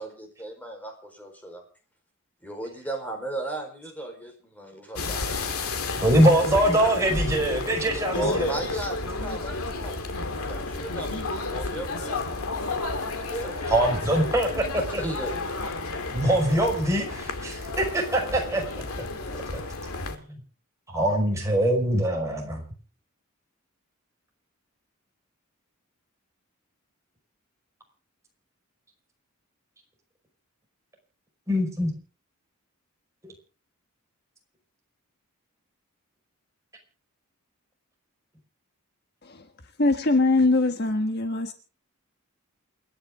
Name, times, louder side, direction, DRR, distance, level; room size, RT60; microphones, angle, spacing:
voice 1, 0.0-1.6 2.4-5.9 8.1-12.2 13.2-13.8 15.0-15.3, right 2 dB, 5° left, 4.8 m, -36 dB
sound 1, 5.0-20.2, left 3 dB, 80° left, 2.2 m, -31 dB
voice 2, 6.0-8.7 13.7-15.0 16.1-18.6 19.5-19.6 20.1-20.4 20.9-22.6 31.5-31.9, right 1 dB, 15° right, 5.5 m, -23 dB
voice 3, 39.8-41.5, left 2 dB, 50° left, 1.4 m, -21 dB
29.0 x 10.5 x 3.8 m
head